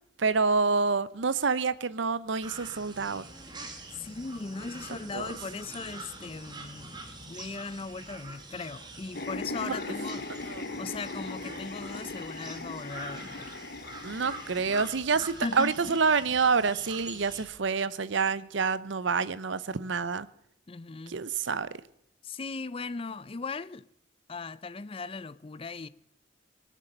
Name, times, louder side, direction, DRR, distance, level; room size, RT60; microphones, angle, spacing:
voice 1, 0.2-3.2 5.1-5.3 9.6-9.7 10.5-10.6 14.0-20.3 21.1-21.7, right 5 dB, 75° right, 0.7 m, -27 dB
sound 1, 2.4-17.5, right 2 dB, 25° right, 1.8 m, -45 dB
voice 2, 3.9-13.5 15.4-16.0 20.7-21.2 22.2-23.9 24.3-25.9, left 4 dB, 30° left, 0.4 m, -38 dB
sound 2, 9.1-14.9, left 3 dB, 55° left, 0.8 m, -39 dB
20.5 x 7.5 x 6.6 m
head